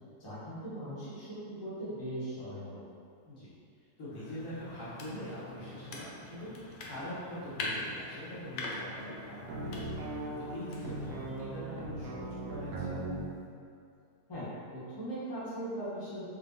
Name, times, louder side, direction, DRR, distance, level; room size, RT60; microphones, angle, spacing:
voice 1, 0.2-2.8 14.3-16.3, right 1 dB, 20° left, -11 dB, 1.0 m, -39 dB
voice 2, 4.0-13.0, equal, 60° left, -10 dB, 1.4 m, -44 dB
sound 1, 4.1-11.5, left 2 dB, 80° left, 1.2 m, -43 dB
sound 2, 9.5-13.3, right 2 dB, 85° right, 1.2 m, -39 dB
4.4 x 3.4 x 2.5 m, 2.4 s
omnidirectional pair, 1.7 m